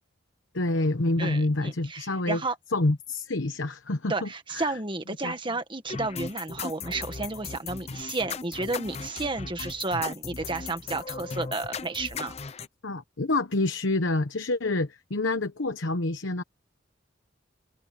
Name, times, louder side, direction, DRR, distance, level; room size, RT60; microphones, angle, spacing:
voice 1, 0.5-2.4 2.7-4.7 5.2-5.3 12.8-16.4, left 2 dB, 75° left, 1.0 m, -27 dB
voice 2, 1.2-2.6 4.1-12.3, right 3 dB, 25° right, 1.7 m, -32 dB
sound 1, 5.9-12.7, left 5 dB, 35° left, 0.6 m, -37 dB
head